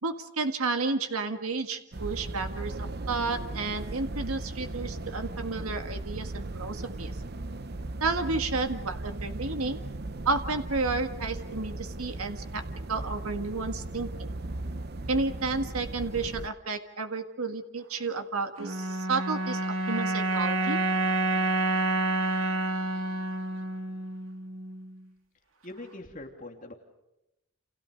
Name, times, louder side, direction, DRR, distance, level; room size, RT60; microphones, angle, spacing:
voice 1, 0.0-7.1 8.0-9.8 10.2-12.6 12.9-14.3 15.1-20.8, right 3 dB, 90° right, 7 dB, 1.8 m, -31 dB
sound 1, 1.9-16.5, right 2 dB, 50° right, 0.8 m, -37 dB
sound 2, 18.6-25.0, right 2 dB, 70° right, 2.3 m, -29 dB
voice 2, 25.6-26.7, left 2 dB, 35° left, 3 dB, 2.9 m, -42 dB
30.0 x 28.5 x 5.3 m, 0.89 s
head